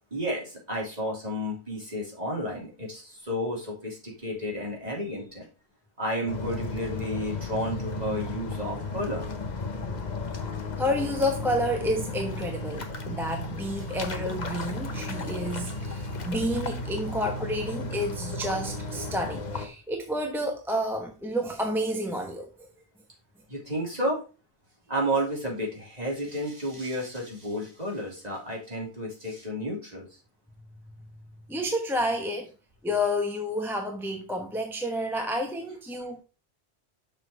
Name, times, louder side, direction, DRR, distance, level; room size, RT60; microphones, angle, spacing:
voice 1, 0.0-5.5 6.0-9.2 17.1-17.2 23.5-24.2 24.9-30.1, equal, 35° right, 3.3 m, -32 dB
sound 1, 6.3-19.7, left 2 dB, 45° left, 1.1 m, -34 dB
voice 2, 10.8-22.5 31.5-32.5 32.8-36.2, equal, ahead, 1.0 m, -30 dB
6.7 x 5.7 x 4.3 m
omnidirectional pair, 1.1 m